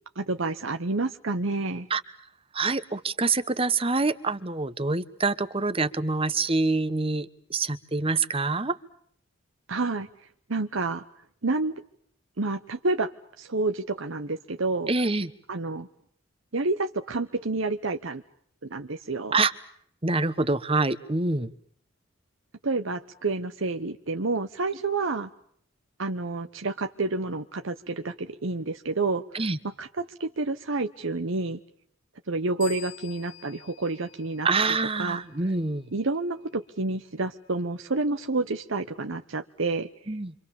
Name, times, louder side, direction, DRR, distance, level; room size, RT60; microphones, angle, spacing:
voice 1, 0.2-1.9 9.7-10.1 10.5-11.0 11.4-11.7 12.4-14.9 15.5-15.9 16.5-18.2 18.7-19.4 22.6-25.3 26.0-31.6 32.3-34.5 35.0-35.2 35.9-40.2, right 3 dB, 70° right, 7 dB, 1.0 m, -29 dB
voice 2, 2.5-8.8 14.9-15.3 19.3-19.5 20.0-21.5 29.3-29.6 34.4-35.8 40.1-40.3, right 3 dB, 25° right, 13 dB, 1.1 m, -26 dB
sound 1, 32.6-35.1, left 7 dB, 65° left, 1.8 m, -45 dB
28.0 x 25.5 x 7.1 m, 0.66 s
head